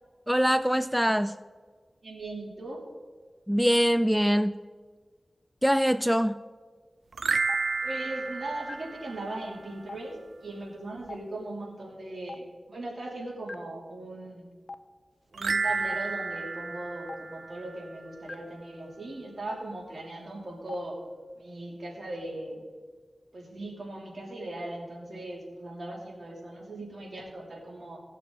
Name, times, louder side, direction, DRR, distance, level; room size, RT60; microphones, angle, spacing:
voice 1, 0.3-1.3 3.5-4.6 5.6-6.3, equal, 5° right, 13 dB, 0.4 m, -23 dB
voice 2, 2.0-2.9 7.8-14.5 15.3-21.0 21.4-22.6 23.3-28.0, right 2 dB, 65° right, -1 dB, 3.0 m, -38 dB
sound 1, 7.1-9.6 15.3-18.0, right 4 dB, 80° right, 0.4 m, -31 dB
Stream, 7.5-7.6 8.7-8.8 9.9-10.0 11.1-11.2 12.3-12.4 13.5-13.6 14.7-14.8 15.9-16.0 17.1-17.2 18.3-18.4 19.5-19.6 20.7-20.8, left 3 dB, 65° left, 0.6 m, -40 dB
17.5 x 6.6 x 3.9 m, 1.5 s
cardioid pair, 40°, 0 cm